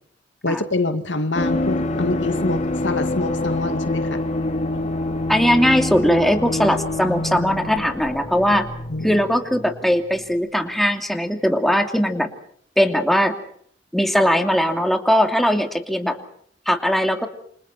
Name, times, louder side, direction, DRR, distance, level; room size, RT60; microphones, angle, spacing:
voice 1, 0.4-4.2 8.9-9.2, left 2 dB, 80° left, 8 dB, 2.3 m, -25 dB
sound 1, 1.3-9.9 10.1-10.2, left 2 dB, 40° left, 3.1 m, -26 dB
voice 2, 5.3-8.7 9.0-12.3 12.8-13.3 13.9-16.2 16.7-17.3, equal, ahead, 5 dB, 2.7 m, -19 dB
28.5 x 27.0 x 4.4 m, 0.65 s
head